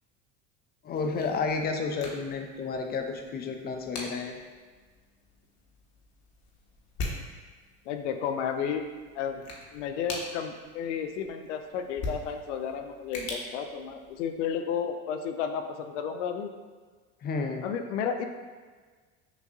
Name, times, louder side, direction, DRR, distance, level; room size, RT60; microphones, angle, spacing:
voice 1, 0.8-4.3 17.2-17.7, left 4 dB, 30° left, 4 dB, 0.4 m, -31 dB
sound 1, 0.9-14.6, left 2 dB, 50° left, 1.0 m, -43 dB
voice 2, 7.9-8.9 9.1-16.5 17.6-18.2, left 7 dB, 85° left, 6 dB, 0.5 m, -32 dB
6.1 x 2.6 x 2.4 m, 1.5 s
supercardioid pair, 95°, 35 cm